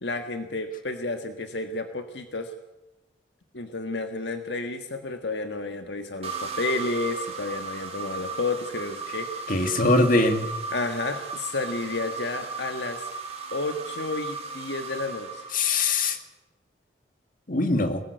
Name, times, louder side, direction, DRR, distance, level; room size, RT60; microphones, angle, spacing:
voice 1, 0.0-2.5 3.5-9.8 10.7-13.1 13.5-15.5, left 3 dB, 65° left, 6 dB, 1.6 m, -31 dB
sound 1, 6.2-16.2, right 4 dB, 35° right, 3.5 m, -36 dB
voice 2, 9.5-10.5 15.5-16.2 17.5-18.0, left 2 dB, 45° left, 7 dB, 2.1 m, -22 dB
22.5 x 18.5 x 8.1 m, 1.0 s
head